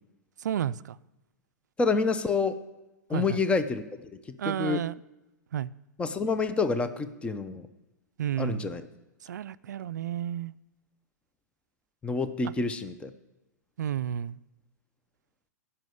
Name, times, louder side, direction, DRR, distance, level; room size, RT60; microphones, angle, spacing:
voice 1, 0.4-1.0 3.1-3.4 4.4-4.9 5.5-5.7 8.2-8.7 9.3-10.5 13.8-14.4, right 10 dB, 75° right, 16 dB, 0.4 m, -31 dB
voice 2, 1.8-2.6 3.1-3.8 4.4-4.8 6.0-7.7 8.4-8.8 12.0-13.1, left 4 dB, 10° left, 11 dB, 0.7 m, -28 dB
17.0 x 5.8 x 7.9 m, 1.0 s
hypercardioid pair, 120°, 10 cm